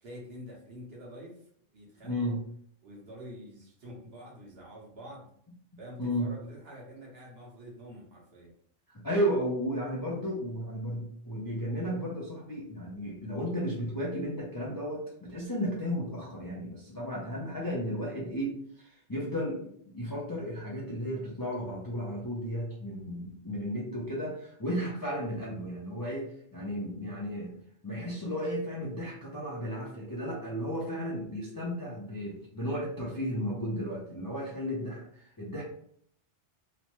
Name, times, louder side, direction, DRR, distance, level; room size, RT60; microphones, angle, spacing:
voice 1, 0.0-1.4 1.7-2.4 2.8-5.3 5.8-8.5, equal, 55° right, -3 dB, 1.2 m, -47 dB
voice 2, 2.0-2.4 6.0-6.3 8.9-27.5 27.8-35.6, equal, 30° left, -4 dB, 0.4 m, -34 dB
3.1 x 2.1 x 2.9 m, 0.64 s
omnidirectional pair, 1.2 m